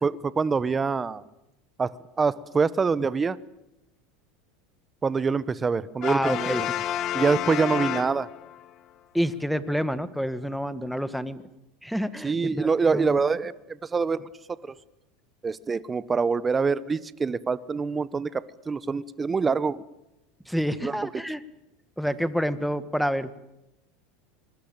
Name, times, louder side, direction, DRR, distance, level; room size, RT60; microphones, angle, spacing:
voice 1, 0.0-1.2 1.8-1.9 2.2-3.4 5.0-6.7 7.1-8.3 12.2-14.3 15.4-19.8 20.8-21.1, right 5 dB, 20° right, 19 dB, 1.2 m, -25 dB
Brass instrument, 6.0-8.7, left 11 dB, 45° left, 1.5 m, -30 dB
voice 2, 6.1-6.6 9.1-11.4 11.8-13.2 20.5-21.4 22.0-23.3, equal, ahead, 14 dB, 1.7 m, -28 dB
25.5 x 21.5 x 9.0 m, 0.90 s
supercardioid pair, 105°, 0 cm